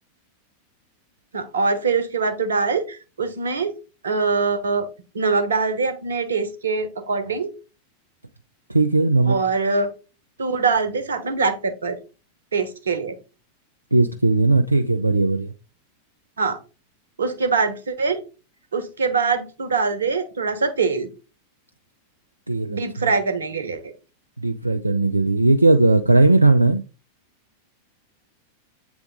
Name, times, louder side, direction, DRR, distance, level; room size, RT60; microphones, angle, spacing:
voice 1, 1.3-3.7 4.0-4.9 5.1-7.5 9.2-9.9 10.4-12.0 12.5-13.2 16.4-16.6 17.2-18.2 18.7-21.1 22.7-23.9, right 4 dB, 70° right, 1.1 m, -23 dB
voice 2, 8.7-9.4 13.9-15.5 22.5-23.1 24.4-26.8, right 2 dB, 85° right, 0.4 m, -18 dB
8.1 x 3.5 x 3.6 m
figure-of-eight pair, 90°, 0 cm